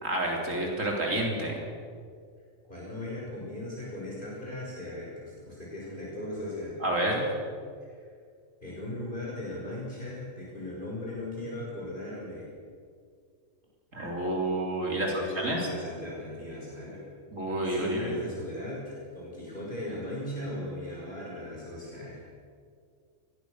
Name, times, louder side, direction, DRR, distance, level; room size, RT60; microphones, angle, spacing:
voice 1, 0.0-1.6 6.8-7.3 13.9-15.7 17.3-18.2, right 1 dB, 65° right, -1 dB, 4.2 m, -29 dB
voice 2, 2.7-6.8 7.8-8.1 8.6-12.5 14.9-17.0 17.6-22.3, left 1 dB, 35° left, -5 dB, 6.1 m, -38 dB
24.5 x 21.0 x 6.7 m, 2.1 s
omnidirectional pair, 1.4 m